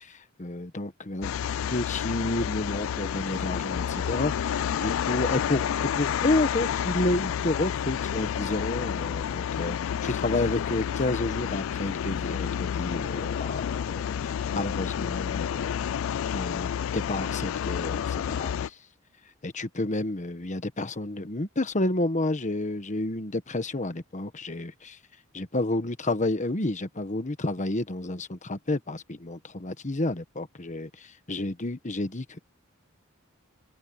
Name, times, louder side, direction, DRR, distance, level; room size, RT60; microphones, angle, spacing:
voice 1, 0.0-1.3 1.7-15.7 16.3-18.7 19.4-25.0 25.3-32.4, left 2 dB, 35° left, 1.3 m, -30 dB
sound 1, 1.2-18.7, left 8 dB, 70° left, 0.3 m, -30 dB
head